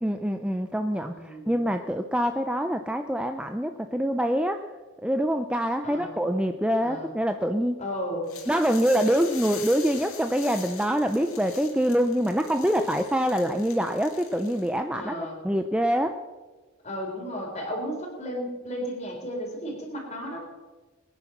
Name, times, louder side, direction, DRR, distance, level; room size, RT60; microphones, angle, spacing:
voice 1, 0.0-4.6 5.0-7.8 8.5-15.1 15.4-16.2, equal, 5° right, 6 dB, 0.5 m, -25 dB
voice 2, 1.1-1.6 5.8-6.2 6.8-7.1 7.8-8.3 14.9-15.4 16.8-20.4, equal, 30° left, 0 dB, 4.0 m, -34 dB
sound 1, 8.3-14.8, left 7 dB, 85° left, 2.8 m, -43 dB
21.0 x 9.8 x 6.0 m, 1.3 s
head